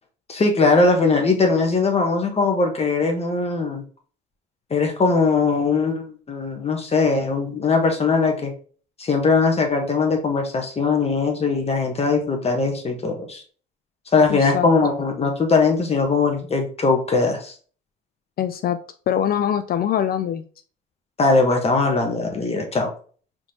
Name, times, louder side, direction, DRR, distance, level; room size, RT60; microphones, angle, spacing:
voice 1, 0.3-3.8 4.7-8.5 9.0-13.4 14.1-17.5 21.2-22.9, left 4 dB, 30° left, 3 dB, 1.2 m, -20 dB
voice 2, 14.3-14.7 18.4-18.8 19.1-20.4, left 9 dB, 50° left, 10 dB, 0.4 m, -23 dB
4.7 x 3.7 x 2.8 m, 0.42 s
cardioid pair, 95°, 20 cm